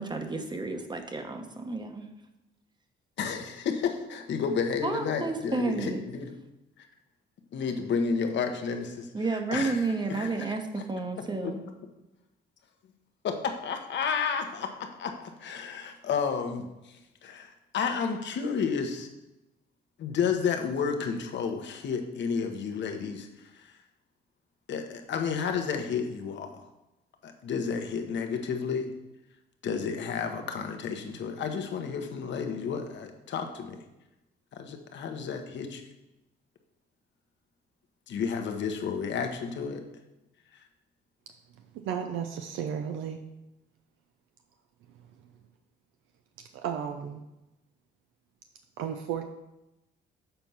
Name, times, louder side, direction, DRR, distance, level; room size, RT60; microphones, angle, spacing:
voice 1, 0.0-2.1 4.8-6.1 9.1-11.6, right 3 dB, 20° right, 6 dB, 1.0 m, -31 dB
voice 2, 3.2-6.3 6.8-6.9 7.5-10.5 11.4-11.5 13.2-14.7 15.0-15.1 15.4-19.1 20.0-23.3 23.5-23.7 24.7-26.6 27.2-28.9 29.6-33.8 34.5-35.8 38.1-39.8, left 6 dB, 65° left, 5 dB, 1.1 m, -31 dB
voice 3, 41.8-43.2 46.6-47.2 48.8-49.2, right 8 dB, 90° right, 5 dB, 0.6 m, -33 dB
6.9 x 4.5 x 5.5 m, 0.96 s
cardioid pair, 90°, 20 cm